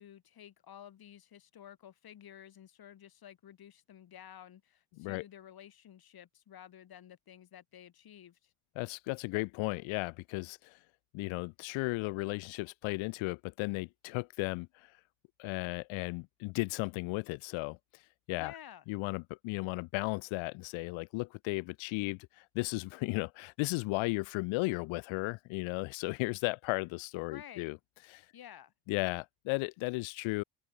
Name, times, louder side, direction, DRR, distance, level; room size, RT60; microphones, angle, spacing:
voice 1, 0.0-8.5 18.4-18.8 27.3-27.7 28.3-28.7, left 10 dB, 50° left, 5.7 m, -52 dB
voice 2, 4.9-5.2 8.8-10.7 11.1-14.7 15.4-17.8 18.3-18.5 18.9-27.8 28.1-28.2 28.9-30.4, left 25 dB, 85° left, 1.9 m, -35 dB
open air
cardioid pair, 105°, 46 cm